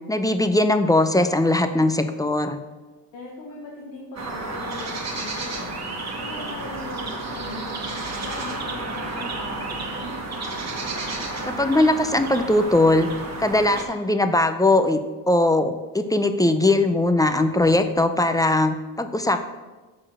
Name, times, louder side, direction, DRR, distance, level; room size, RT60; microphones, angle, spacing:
voice 1, 0.1-2.6 11.4-13.1 13.4-15.0 15.3-19.4, left 2 dB, 10° left, 8 dB, 0.4 m, -20 dB
voice 2, 3.1-5.9 6.2-10.2, left 2 dB, 90° left, -3 dB, 1.3 m, -39 dB
sound 1, 4.2-13.9, right 2 dB, 35° right, 1.4 m, -31 dB
6.2 x 4.5 x 6.1 m, 1.2 s
supercardioid pair, 70°, 44 cm